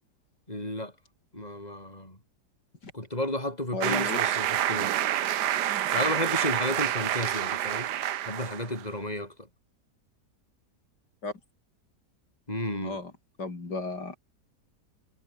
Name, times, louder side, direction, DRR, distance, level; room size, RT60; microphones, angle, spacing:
voice 1, 0.5-0.9 1.3-2.2 2.9-5.0 5.9-7.9 8.2-9.5 12.5-13.0, left 1 dB, 20° left, 7.3 m, -33 dB
voice 2, 3.7-4.3 11.2-11.3 12.8-13.1 13.4-14.2, left 3 dB, 80° left, 4.7 m, -34 dB
sound 1, 3.8-8.8, right 12 dB, 75° right, 1.5 m, -28 dB
omnidirectional pair, 1.8 m